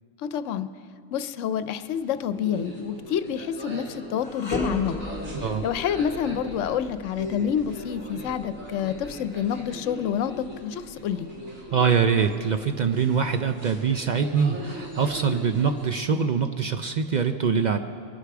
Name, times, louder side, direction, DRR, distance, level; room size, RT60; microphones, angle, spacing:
voice 1, 0.2-0.7 1.1-4.9 5.6-11.3, left 8 dB, 75° left, 12 dB, 0.9 m, -28 dB
sound 1, 1.7-16.1, equal, 85° right, 2.8 m, -40 dB
sound 2, 4.2-13.4 13.9-14.0 14.9-15.8, left 1 dB, 20° left, 2.2 m, -39 dB
voice 2, 11.7-17.8, right 6 dB, 65° right, 7 dB, 0.4 m, -24 dB
22.0 x 8.2 x 5.9 m, 2.4 s
omnidirectional pair, 1.3 m